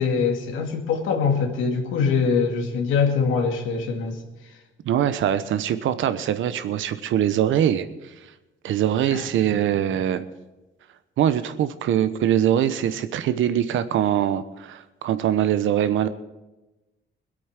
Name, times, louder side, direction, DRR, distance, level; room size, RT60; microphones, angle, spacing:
voice 1, 0.0-4.2 9.1-9.2, left 5 dB, 90° left, 3 dB, 2.2 m, -23 dB
voice 2, 4.8-7.9 8.6-10.3 11.2-16.1, right 10 dB, 80° right, 12 dB, 1.0 m, -22 dB
21.5 x 8.5 x 5.9 m, 1.1 s
cardioid pair, 90°, 20 cm